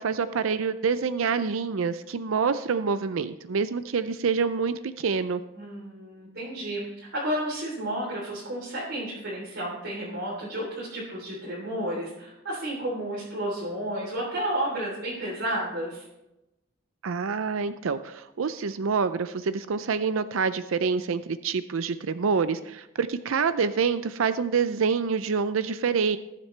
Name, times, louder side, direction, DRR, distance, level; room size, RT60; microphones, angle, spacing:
voice 1, 0.0-5.4 17.0-26.2, right 5 dB, 75° right, 12 dB, 0.5 m, -26 dB
voice 2, 5.5-16.0, right 1 dB, 60° right, -7 dB, 3.4 m, -32 dB
19.5 x 7.4 x 3.3 m, 0.94 s
head